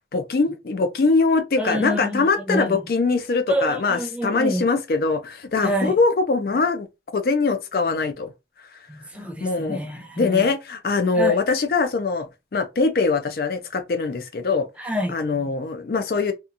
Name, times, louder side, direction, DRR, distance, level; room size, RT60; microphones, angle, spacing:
voice 1, 0.1-6.9 7.1-8.3 9.4-9.8 10.2-12.3 12.5-14.7 15.1-16.3, left 4 dB, 55° left, 0.4 m, -22 dB
voice 2, 1.6-2.8 3.5-4.6 5.6-5.9 8.9-10.4 11.2-11.4 14.8-15.2 15.4-15.5, right 1 dB, 5° right, 0.4 m, -27 dB
2.8 x 2.3 x 2.5 m
head